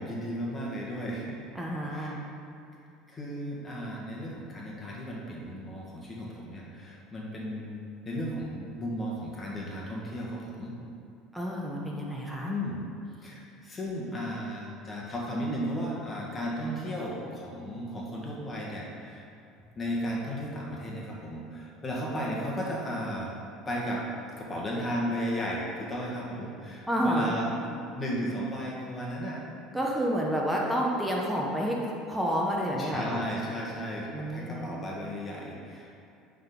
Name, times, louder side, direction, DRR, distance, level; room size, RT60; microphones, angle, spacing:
voice 1, 0.0-1.4 1.9-2.1 3.1-10.8 12.4-12.8 13.2-19.3 19.7-23.3 23.6-24.0 24.4-29.4 32.8-35.9, equal, 25° left, -4 dB, 1.6 m, -34 dB
voice 2, 1.5-2.2 11.3-12.5 26.9-27.3 29.7-33.2 34.1-34.7, equal, 5° right, -2 dB, 1.1 m, -29 dB
9.4 x 3.9 x 3.9 m, 2.6 s
hypercardioid pair, 80°, 0 cm